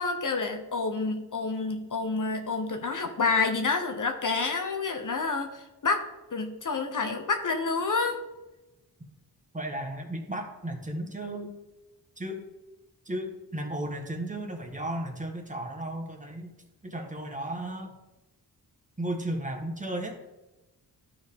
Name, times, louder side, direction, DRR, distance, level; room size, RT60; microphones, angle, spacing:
voice 1, 0.0-8.2, left 4 dB, 50° left, 5 dB, 0.9 m, -29 dB
voice 2, 9.5-11.5 12.2-12.4 13.0-16.5 16.8-17.9 19.0-20.2, right 1 dB, 20° right, 1 dB, 1.4 m, -34 dB
13.0 x 4.7 x 3.6 m, 1.1 s
wide cardioid pair, 75°, 40 cm